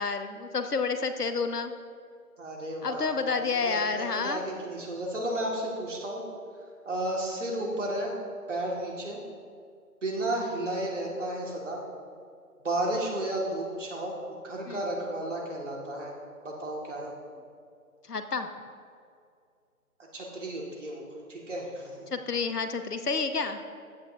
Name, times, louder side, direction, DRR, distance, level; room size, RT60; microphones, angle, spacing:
voice 1, 0.0-1.7 2.8-4.5 14.7-14.8 18.1-18.5 22.1-23.6, left 4 dB, 85° left, 9 dB, 1.0 m, -29 dB
voice 2, 2.4-3.1 3.5-6.2 6.9-8.1 8.5-9.2 10.0-11.8 12.6-16.1 16.4-17.2 20.1-21.9, right 1 dB, 50° right, -2 dB, 2.1 m, -33 dB
15.0 x 9.0 x 2.7 m, 2.3 s
figure-of-eight pair, 160°, 45 cm